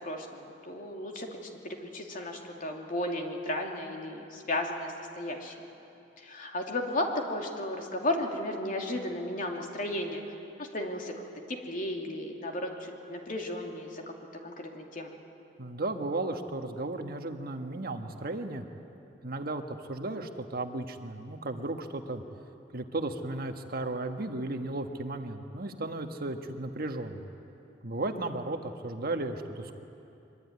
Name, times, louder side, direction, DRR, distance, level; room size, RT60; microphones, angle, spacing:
voice 1, 0.0-5.5 6.2-10.2 10.6-11.1 11.5-14.0 14.4-15.1, left 1 dB, 45° left, 2 dB, 2.8 m, -34 dB
voice 2, 15.6-18.6 19.2-22.2 22.7-27.3 27.8-29.8, right 2 dB, 50° right, 5 dB, 1.4 m, -35 dB
23.5 x 22.5 x 9.6 m, 2.8 s
head